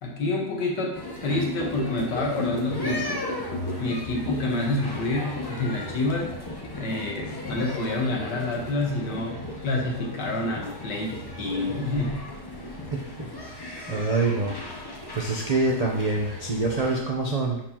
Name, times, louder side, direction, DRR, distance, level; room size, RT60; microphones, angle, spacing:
voice 1, 0.0-3.2 3.8-6.3 6.7-12.2, left 2 dB, 70° left, 0 dB, 1.9 m, -28 dB
sound 1, 0.9-17.0, left 1 dB, 20° left, 0.7 m, -35 dB
voice 2, 13.6-14.6 14.8-17.6, right 3 dB, 70° right, -2 dB, 0.3 m, -26 dB
9.9 x 4.5 x 2.9 m, 0.80 s
omnidirectional pair, 2.0 m